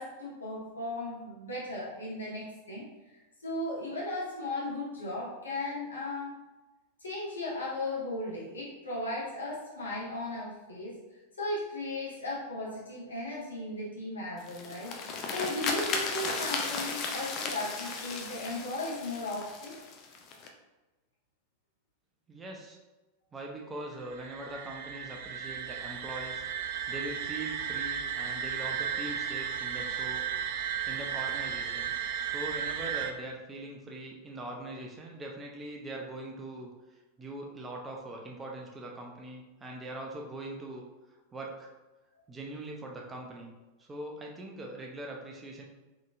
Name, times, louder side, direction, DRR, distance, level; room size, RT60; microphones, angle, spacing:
voice 1, 0.0-2.9 3.4-6.3 7.0-11.0 11.4-14.9 15.3-19.8, left 2 dB, 75° left, -6 dB, 1.4 m, -36 dB
sound 1, 14.4-20.5, left 4 dB, 35° left, 0.5 m, -35 dB
voice 2, 22.3-22.8 23.3-30.3 30.9-31.9 32.2-36.7 37.2-40.8 41.3-41.7 42.3-43.5 43.8-45.6, right 2 dB, 15° right, 0 dB, 0.7 m, -42 dB
sound 2, 24.0-33.1, right 8 dB, 50° right, 0.4 m, -34 dB
3.8 x 3.7 x 2.5 m, 1.1 s
figure-of-eight pair, 90°, 0 cm